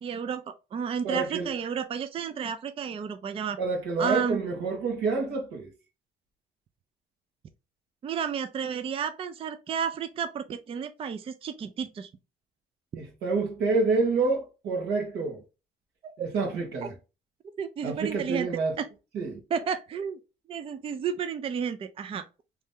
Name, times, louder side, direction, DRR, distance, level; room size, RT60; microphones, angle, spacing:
voice 1, 0.0-3.6 4.0-4.4 8.0-12.1 16.0-16.3 16.8-16.9 17.6-18.5 18.8-18.9 19.5-20.2 20.5-22.3, right 7 dB, 35° right, 0.4 m, -32 dB
voice 2, 1.0-1.5 3.6-5.7 12.9-15.4 16.2-16.9 17.8-18.7 19.1-19.4, right 3 dB, 80° right, 1.5 m, -28 dB
3.2 x 2.7 x 3.6 m
cardioid pair, 110°, 17 cm